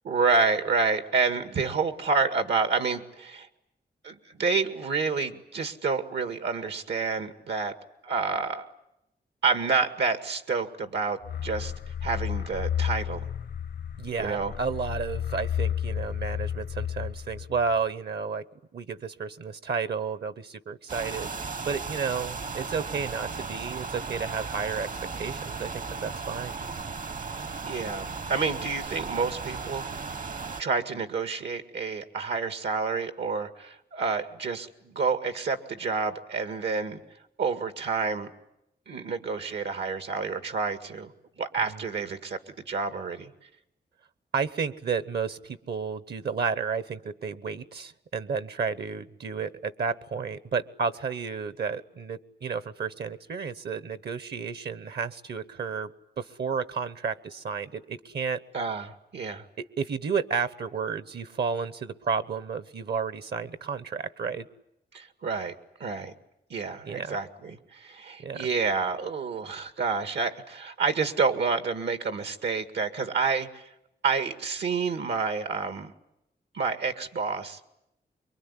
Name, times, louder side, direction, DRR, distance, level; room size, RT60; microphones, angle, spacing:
voice 1, 0.0-3.5 4.0-7.7 8.0-8.7 9.4-11.7 12.0-13.3 14.2-14.5 27.6-30.1 30.6-37.0 37.4-38.3 38.9-41.1 41.4-43.3 58.5-59.4 64.9-65.5 65.8-66.1 66.5-73.7 74.0-75.9 76.5-77.7, right 4 dB, 90° right, 9 dB, 2.0 m, -29 dB
sound 1, 11.2-17.8, left 9 dB, 85° left, 1.0 m, -32 dB
voice 2, 14.0-18.4 18.7-21.3 21.6-24.9 25.1-26.6 41.6-41.8 44.3-55.9 56.2-58.4 59.6-64.5 66.8-67.2 68.2-68.5, right 5 dB, 70° right, 15 dB, 1.1 m, -32 dB
Wind noise in high quality, 20.9-30.6, right 4 dB, 50° right, 1.0 m, -36 dB
25.0 x 23.0 x 9.9 m, 0.82 s
cardioid pair, 80°, 18 cm